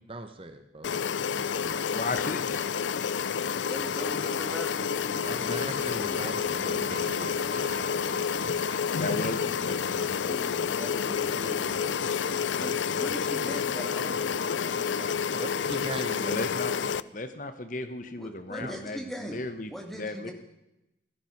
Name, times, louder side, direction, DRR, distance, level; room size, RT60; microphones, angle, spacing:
voice 1, 0.1-1.0 1.6-1.8 5.2-7.7 15.4-16.4, right 2 dB, 30° right, 7 dB, 1.1 m, -40 dB
sound 1, 0.8-17.0, left 7 dB, 85° left, 0.5 m, -29 dB
voice 2, 1.9-2.7 9.0-10.3 16.3-20.3, left 2 dB, 45° left, 9 dB, 1.1 m, -36 dB
voice 3, 3.6-7.0 10.2-12.0 12.6-15.4 18.2-19.4 19.7-20.3, equal, ahead, 2 dB, 2.3 m, -41 dB
sound 2, 4.9-14.9, right 1 dB, 50° right, 3.2 m, -46 dB
16.5 x 12.5 x 5.9 m, 0.90 s
head